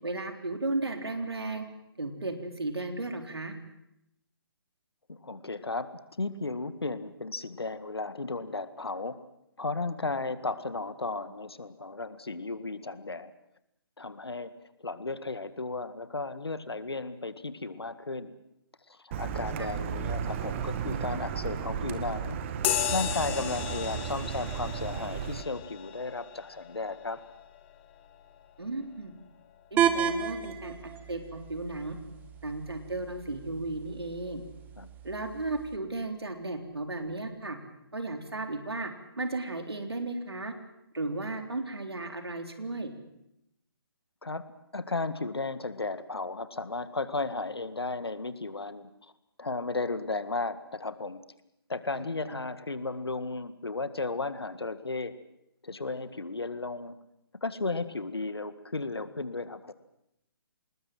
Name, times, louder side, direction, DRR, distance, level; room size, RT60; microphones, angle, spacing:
voice 1, 0.0-1.7 2.0-3.5 19.6-19.7 28.6-29.1 29.7-32.0 32.4-34.4 35.0-37.6 37.9-38.9 39.2-40.5 40.9-42.9 51.9-52.4, right 2 dB, 80° right, 5 dB, 3.8 m, -35 dB
voice 2, 5.1-5.9 6.2-9.2 9.6-13.3 14.0-14.5 14.8-18.3 18.9-22.4 22.9-27.2 34.8-34.9 44.2-44.4 44.7-48.9 49.4-51.2 51.7-55.1 55.6-57.0 57.4-59.7, left 3 dB, 80° left, 13 dB, 1.9 m, -34 dB
Car, 19.1-25.4, right 8 dB, 30° right, 1.9 m, -34 dB
sound 1, 22.6-30.5, left 11 dB, 30° left, 1.7 m, -36 dB
sound 2, 29.8-35.8, right 8 dB, 15° right, 1.2 m, -33 dB
26.5 x 20.5 x 7.8 m, 0.81 s
figure-of-eight pair, 140°, 13 cm